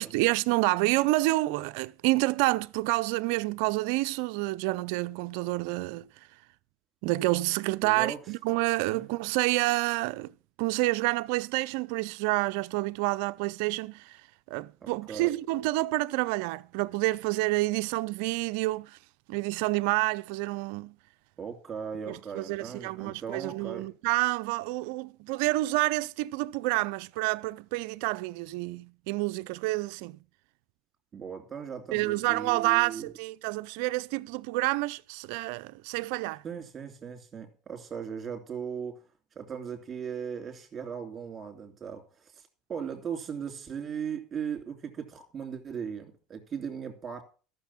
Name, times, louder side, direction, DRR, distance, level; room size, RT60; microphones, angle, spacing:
voice 1, 0.0-6.1 7.0-14.2 14.5-19.0 19.3-20.9 22.1-30.2 31.9-36.4, right 20 dB, 75° right, 0.4 m, -28 dB
voice 2, 7.8-8.2 8.9-9.1 14.8-15.3 21.4-23.9 31.1-33.1 36.4-39.0 39.3-42.4 42.7-47.2, right 7 dB, 35° right, 3.1 m, -38 dB
13.0 x 6.8 x 5.7 m
hypercardioid pair, 85°, 0 cm